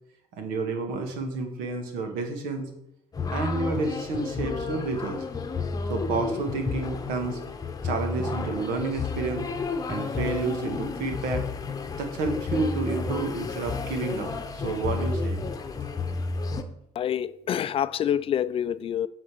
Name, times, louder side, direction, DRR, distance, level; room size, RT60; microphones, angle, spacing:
voice 1, 0.3-2.7 3.3-5.2 5.9-7.4 7.8-9.4 9.9-11.5 12.0-15.4, right 3 dB, 80° right, 1.7 m, -30 dB
sound 1, 3.1-16.6, left 4 dB, 25° left, 0.9 m, -31 dB
voice 2, 17.0-19.1, left 9 dB, 40° left, 0.4 m, -27 dB
7.7 x 4.2 x 6.9 m
cardioid pair, 100°, 14 cm